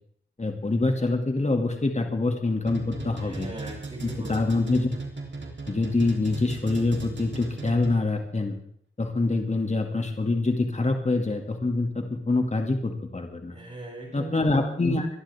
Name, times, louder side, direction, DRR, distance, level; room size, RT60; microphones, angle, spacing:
voice 1, 0.4-3.5 4.0-4.9 5.7-8.5 9.0-13.6 14.1-15.1, left 2 dB, 35° left, 4 dB, 2.4 m, -25 dB
sound 1, 2.7-8.2, right 3 dB, 60° right, 3.4 m, -37 dB
voice 2, 3.2-4.7 13.5-14.5 14.9-15.0, right 1 dB, 35° right, -7 dB, 7.8 m, -40 dB
23.5 x 11.5 x 3.6 m, 0.66 s
cardioid pair, 50°, 21 cm